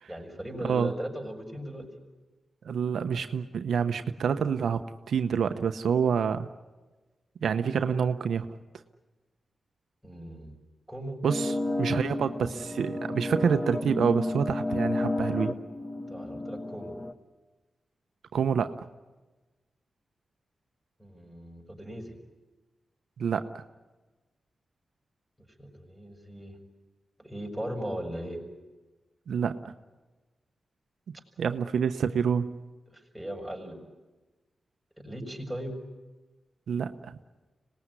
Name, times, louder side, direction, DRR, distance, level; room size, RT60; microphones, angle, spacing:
voice 1, 0.1-1.9 10.0-10.5 10.9-11.2 16.1-16.9 21.0-22.1 25.4-26.6 27.2-28.4 32.9-33.8 35.0-35.8, equal, ahead, 1 dB, 6.2 m, -38 dB
voice 2, 2.6-6.5 7.4-8.5 11.2-15.5 18.3-18.7 23.2-23.6 29.3-29.6 31.4-32.5 36.7-37.2, right 7 dB, 85° right, 9 dB, 0.9 m, -27 dB
sound 1, 11.3-17.1, left 2 dB, 25° left, 1.4 m, -32 dB
25.5 x 19.5 x 9.8 m, 1.2 s
cardioid pair, 65°, 0 cm